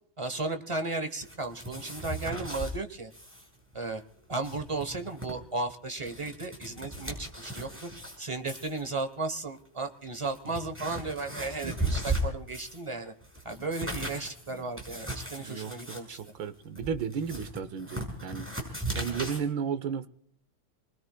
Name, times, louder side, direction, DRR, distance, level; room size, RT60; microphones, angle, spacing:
voice 1, 0.2-3.1 3.7-4.0 4.3-7.9 8.2-13.1 13.4-16.2, right 3 dB, 35° right, 0.5 m, -35 dB
sound 1, 1.2-2.7 3.1-3.5 3.7-3.8 4.2-5.3 5.8-8.2 8.5-8.8 9.6-9.7 10.2-12.9 13.2-19.4, right 1 dB, 5° right, 4.6 m, -37 dB
voice 2, 11.6-12.1 14.5-14.6 15.4-16.0 16.4-18.5 18.9-20.1, right 7 dB, 80° right, 1.6 m, -34 dB
28.5 x 20.5 x 2.2 m
omnidirectional pair, 2.1 m